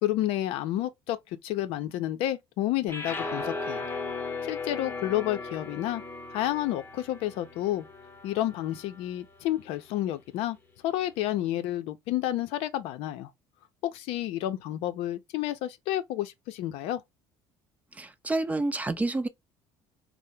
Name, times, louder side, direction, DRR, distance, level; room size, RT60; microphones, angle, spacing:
voice 1, 0.0-1.2 1.4-3.9 4.4-6.0 6.3-7.9 8.2-10.6 10.8-13.3 13.8-17.0, left 13 dB, 75° left, 0.5 m, -30 dB
sound 1, 2.9-9.1, left 3 dB, 20° left, 0.7 m, -37 dB
voice 2, 17.9-19.3, right 2 dB, 15° right, 0.4 m, -29 dB
2.8 x 2.0 x 3.3 m
supercardioid pair, 100°, 10 cm